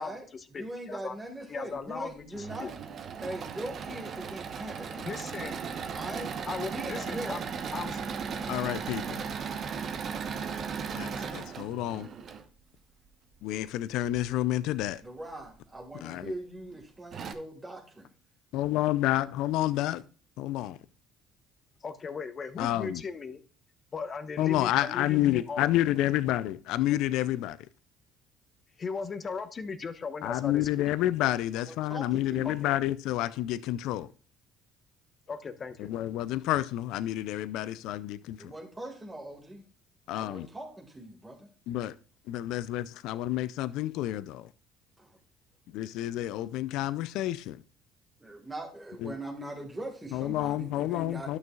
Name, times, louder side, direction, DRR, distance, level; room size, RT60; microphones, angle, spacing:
voice 1, 0.0-1.2 1.5-2.7 4.7-5.6 6.5-7.4 7.7-8.0 21.8-23.4 23.9-25.7 28.8-30.7 32.4-32.7 35.3-35.9, left 5 dB, 40° left, 1.0 m, -38 dB
voice 2, 0.6-2.7 3.2-5.1 5.9-6.3 6.7-7.6 15.0-18.1 31.7-32.6 38.4-39.6 40.1-41.5 45.0-45.2 48.2-51.4, right 1 dB, 15° right, 1.7 m, -41 dB
Engine / Mechanisms, 2.3-12.4 14.0-14.8 15.4-15.5 15.8-15.9 16.7-16.8 17.1-17.3, right 6 dB, 55° right, 0.9 m, -37 dB
voice 3, 8.5-9.2 10.4-10.5 10.9-12.1 13.4-15.0 16.0-16.3 18.5-20.0 20.4-20.8 22.6-23.0 24.4-27.6 30.2-34.1 35.8-38.4 40.1-40.5 41.7-41.9 42.3-44.5 45.7-47.6 49.0-49.1 50.1-51.4, left 14 dB, 75° left, 0.4 m, -29 dB
11.5 x 6.3 x 2.3 m
supercardioid pair, 75°, 0 cm